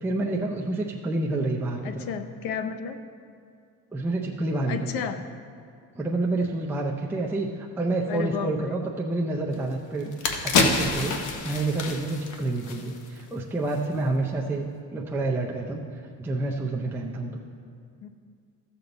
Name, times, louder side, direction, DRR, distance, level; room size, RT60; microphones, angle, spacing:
voice 1, 0.0-2.0 3.9-5.0 6.0-10.1 10.4-15.8 16.2-17.4, right 2 dB, 5° right, -1 dB, 0.5 m, -28 dB
voice 2, 1.8-3.0 4.7-5.3 8.1-8.8 18.0-18.1, left 7 dB, 80° left, 9 dB, 0.8 m, -32 dB
sound 1, 9.5-9.6 10.0-13.3 13.6-13.8, left 4 dB, 55° left, 1.1 m, -27 dB
14.5 x 6.9 x 4.0 m, 2.3 s
cardioid pair, 150°, 36 cm